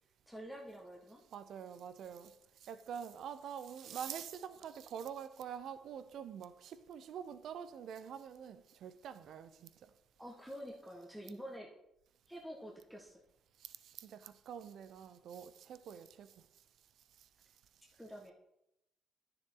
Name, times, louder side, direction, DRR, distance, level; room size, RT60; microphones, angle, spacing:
voice 1, 0.3-1.2 10.2-11.7 12.3-13.2 18.0-18.3, equal, 5° right, 1.4 m, -48 dB
voice 2, 1.3-2.3 2.6-9.9 13.6-16.3, right 8 dB, 70° right, 0.6 m, -46 dB
10.0 x 7.0 x 3.8 m
cardioid pair, 75°, 0 cm